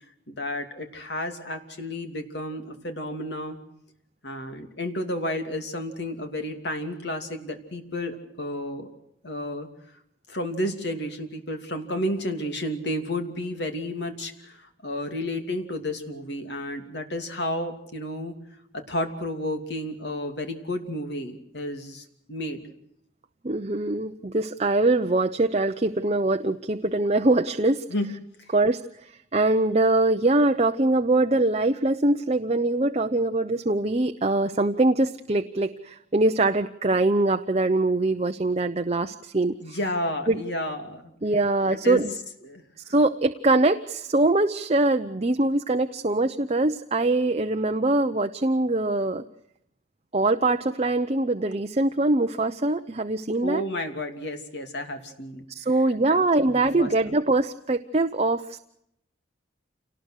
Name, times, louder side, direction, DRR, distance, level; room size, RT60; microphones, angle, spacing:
voice 1, 0.3-3.6 4.2-8.9 9.2-9.7 10.3-18.4 18.7-22.6 27.9-28.1 39.6-41.1 41.8-42.0 42.4-42.6 53.4-55.5 56.1-56.9, left 1 dB, 60° left, 6 dB, 2.9 m, -31 dB
voice 2, 23.4-27.8 28.5-39.8 40.3-40.4 41.2-42.1 42.9-49.2 50.1-53.6 55.5-58.6, right 2 dB, 35° right, 7 dB, 0.8 m, -23 dB
28.0 x 19.0 x 6.4 m, 0.75 s
head